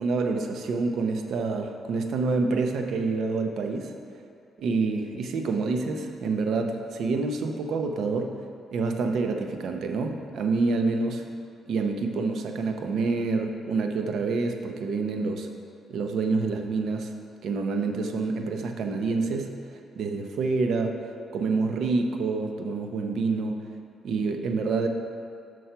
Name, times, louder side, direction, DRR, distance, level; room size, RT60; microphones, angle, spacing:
voice 1, 0.0-3.9 4.6-8.4 8.7-11.2 11.7-15.5 15.9-17.1 17.4-19.6 20.0-21.0 21.3-23.6 24.0-24.9, right 4 dB, 70° right, 5 dB, 0.7 m, -27 dB
6.3 x 5.8 x 5.6 m, 2.4 s
cardioid pair, 90°, 0 cm